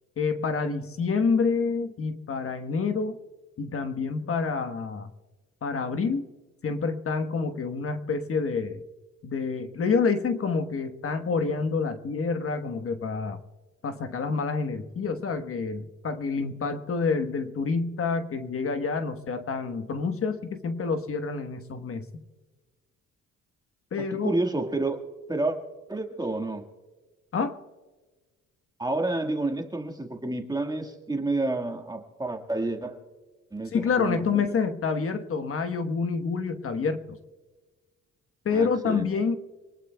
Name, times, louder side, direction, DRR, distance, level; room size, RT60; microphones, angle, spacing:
voice 1, 0.2-3.2 3.6-5.1 5.6-6.3 6.6-8.8 9.2-13.4 13.8-22.2 23.9-24.3 27.3-27.6 33.7-37.2 38.4-39.4, left 5 dB, 45° left, 8 dB, 1.2 m, -28 dB
voice 2, 24.0-25.0 25.3-25.6 25.9-26.6 28.8-33.0 33.5-34.6 38.5-39.1, right 2 dB, 15° right, 5 dB, 1.6 m, -30 dB
25.5 x 19.0 x 2.3 m, 1.3 s
cardioid pair, 90°, 30 cm